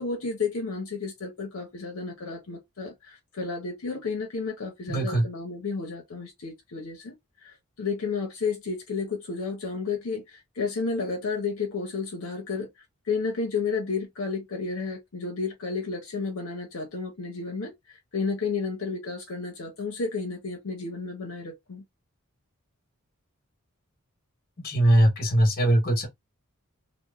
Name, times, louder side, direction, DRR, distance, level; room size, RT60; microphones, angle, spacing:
voice 1, 0.0-7.1 7.4-12.7 13.1-17.7 18.1-21.8, left 4 dB, 75° left, 0.6 m, -32 dB
voice 2, 4.9-5.2 24.6-26.1, right 1 dB, 45° left, 0.9 m, -21 dB
2.9 x 2.0 x 2.2 m
head